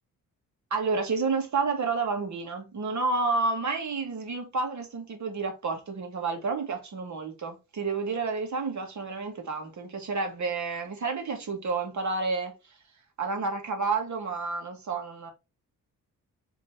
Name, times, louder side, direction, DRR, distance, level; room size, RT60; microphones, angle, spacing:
voice 1, 0.7-12.5 13.2-15.3, right 4 dB, 55° right, 2.2 m, -30 dB
5.6 x 3.8 x 4.7 m
cardioid pair, 115°, 33 cm